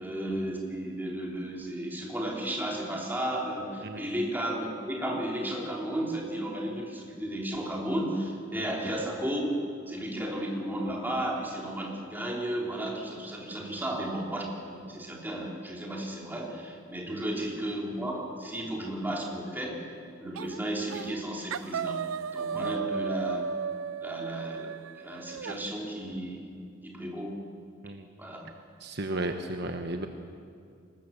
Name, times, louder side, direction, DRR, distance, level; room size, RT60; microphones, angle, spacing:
voice 1, 0.0-9.5 9.9-19.9 20.2-22.0 22.3-23.4 24.0-26.5 26.8-27.4 28.2-28.5, right 1 dB, 10° right, -2 dB, 3.6 m, -34 dB
sound 1, 20.4-20.6 20.9-21.2 21.5-25.6, right 6 dB, 85° right, 0.5 m, -34 dB
voice 2, 28.8-30.1, right 1 dB, 55° right, 5 dB, 1.2 m, -34 dB
25.0 x 20.0 x 7.3 m, 2.3 s
head